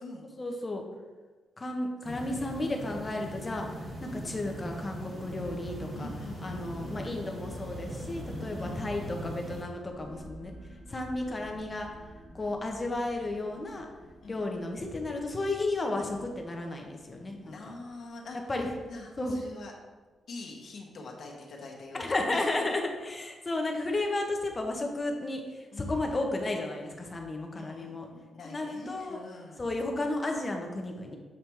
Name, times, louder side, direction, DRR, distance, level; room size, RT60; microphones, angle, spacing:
voice 1, 0.4-0.8 1.6-3.9 4.1-6.1 6.4-10.5 10.9-11.9 12.3-13.9 14.3-17.6 18.5-18.7 19.2-19.4 21.9-28.1 28.4-29.2 29.6-31.2, left 2 dB, 20° left, 2 dB, 0.8 m, -33 dB
sound 1, 2.0-9.6, equal, 30° right, 1.5 m, -40 dB
voice 2, 5.9-7.1 8.6-8.9 14.2-14.5 15.9-16.1 17.4-18.4 18.9-19.7 20.3-22.5 25.7-26.1 27.5-29.6, left 3 dB, 50° left, -1 dB, 1.1 m, -45 dB
sound 2, 9.3-20.4, equal, 10° right, 1.9 m, -53 dB
7.3 x 3.3 x 4.5 m, 1.3 s
wide cardioid pair, 150°, 0 cm